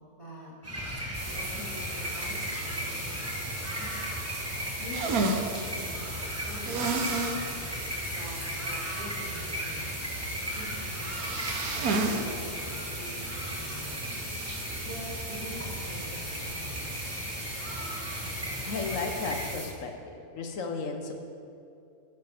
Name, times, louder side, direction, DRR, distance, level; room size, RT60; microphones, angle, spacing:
voice 1, 0.1-0.5 1.2-4.2 4.8-10.1 10.5-14.2 14.8-17.7, equal, 20° left, -7 dB, 2.8 m, -45 dB
sound 1, 0.6-19.5, equal, 10° right, 1.2 m, -36 dB
sound 2, 1.1-19.7, right 1 dB, 30° right, 2.0 m, -40 dB
sound 3, 4.9-5.5 6.6-7.4 7.8-7.9 8.3-8.4 11.0-12.2 12.6-12.7 14.3-14.6, right 3 dB, 80° right, 1.3 m, -30 dB
voice 2, 18.6-21.1, left 4 dB, 65° left, 4 dB, 1.3 m, -34 dB
12.5 x 9.4 x 3.5 m, 2.6 s
omnidirectional pair, 1.5 m